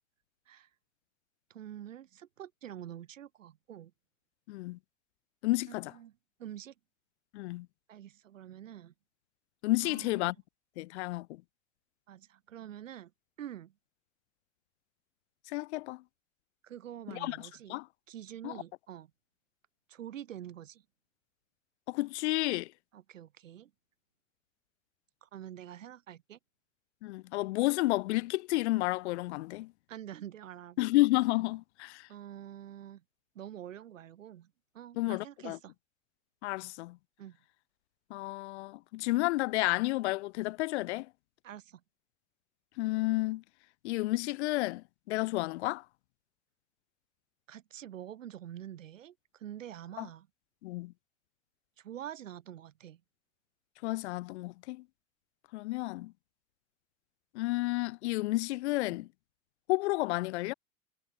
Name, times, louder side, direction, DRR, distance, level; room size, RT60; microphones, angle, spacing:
voice 1, 1.5-3.9 5.9-6.7 7.9-8.9 9.8-10.3 12.1-13.1 13.4-13.7 16.6-17.8 18.1-19.1 19.9-20.8 22.9-23.7 25.2-26.4 29.9-30.9 32.1-33.0 33.4-35.7 37.2-37.4 41.4-41.8 47.5-50.3 51.8-53.0, right 11 dB, 75° right, 5.2 m, -46 dB
voice 2, 4.5-4.8 5.4-5.9 7.3-7.7 9.6-10.3 10.8-11.3 15.5-16.0 17.1-17.4 17.7-17.8 18.4-18.5 21.9-22.7 27.0-29.7 30.8-32.1 35.0-35.6 36.4-37.0 38.1-41.1 42.8-43.4 43.8-45.8 50.0-50.1 50.6-50.9 53.8-54.8 55.5-56.1 57.3-59.1 59.7-60.5, left 20 dB, 60° left, 1.5 m, -31 dB
hypercardioid pair, 95°, 39 cm